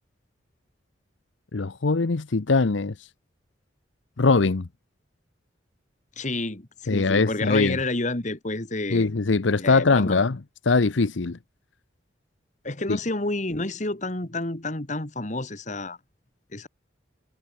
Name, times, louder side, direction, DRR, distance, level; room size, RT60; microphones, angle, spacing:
voice 1, 1.5-2.9 4.2-4.7 6.9-7.8 8.9-10.4 10.7-11.4 12.9-13.0, left 3 dB, 80° left, 0.8 m, -21 dB
voice 2, 6.2-9.1 9.6-10.2 12.6-16.0 16.5-16.7, left 2 dB, 40° left, 2.0 m, -29 dB
head